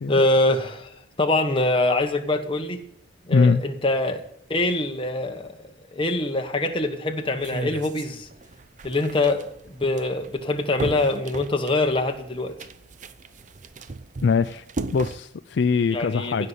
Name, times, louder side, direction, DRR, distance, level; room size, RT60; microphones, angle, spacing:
voice 1, 0.1-2.8 3.2-4.2 4.5-8.3 8.8-12.5 15.9-16.5, left 2 dB, 25° left, 4 dB, 1.2 m, -24 dB
voice 2, 3.3-3.6 14.2-14.6 14.9-16.5, left 5 dB, 60° left, 12 dB, 0.4 m, -21 dB
sound 1, 7.4-15.2, right 3 dB, 40° right, 0.5 m, -37 dB
16.0 x 5.5 x 8.1 m, 0.71 s
head